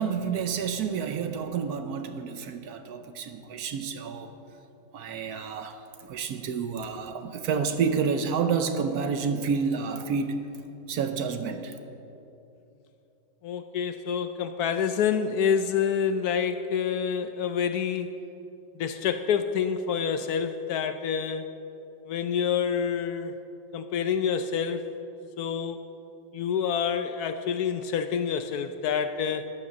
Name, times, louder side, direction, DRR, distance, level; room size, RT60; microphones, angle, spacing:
voice 1, 0.0-4.3 4.9-5.8 6.1-10.5 10.9-11.7, right 6 dB, 65° right, 8 dB, 1.1 m, -29 dB
voice 2, 13.4-18.1 18.8-21.5 22.1-23.3 23.7-24.8 25.4-25.8 26.3-29.5, left 7 dB, 70° left, 9 dB, 1.0 m, -27 dB
13.0 x 9.8 x 6.2 m, 3.0 s
omnidirectional pair, 1.9 m